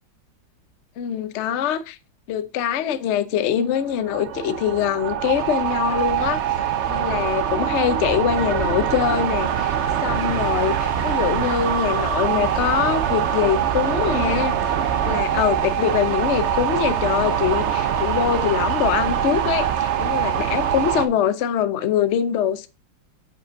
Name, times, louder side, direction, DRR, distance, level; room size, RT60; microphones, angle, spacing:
voice 1, 1.0-2.0 2.3-6.4 6.9-9.7 10.0-14.5 14.9-22.7, left 9 dB, 85° left, 0.6 m, -23 dB
sound 1, 3.7-21.1, right 9 dB, 85° right, 0.6 m, -23 dB
5.9 x 5.2 x 5.0 m
omnidirectional pair, 2.1 m